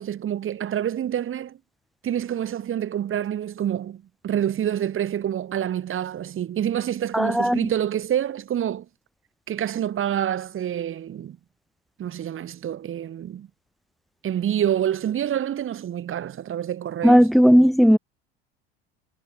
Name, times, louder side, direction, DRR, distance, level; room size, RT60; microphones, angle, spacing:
voice 1, 0.0-1.6 2.0-8.9 9.5-11.4 12.0-13.5 14.2-17.3, right 10 dB, 40° right, 4.5 m, -27 dB
voice 2, 7.1-7.6 17.0-18.0, equal, ahead, 0.3 m, -15 dB
hypercardioid pair, 70°, 30 cm